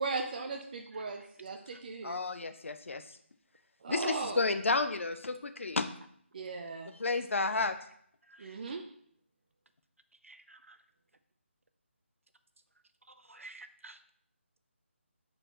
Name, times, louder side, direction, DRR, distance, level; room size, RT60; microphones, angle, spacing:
voice 1, 0.0-2.2 3.8-4.4 6.3-6.9 8.4-8.8, right 4 dB, 40° right, 3 dB, 0.5 m, -37 dB
voice 2, 2.0-3.0 3.9-5.9 7.0-7.7, left 3 dB, 75° left, 9 dB, 0.6 m, -31 dB
voice 3, 8.3-8.6 10.2-10.8 13.1-14.0, right 2 dB, 90° right, 11 dB, 0.6 m, -52 dB
7.7 x 4.4 x 3.0 m, 0.64 s
figure-of-eight pair, 160°, 7 cm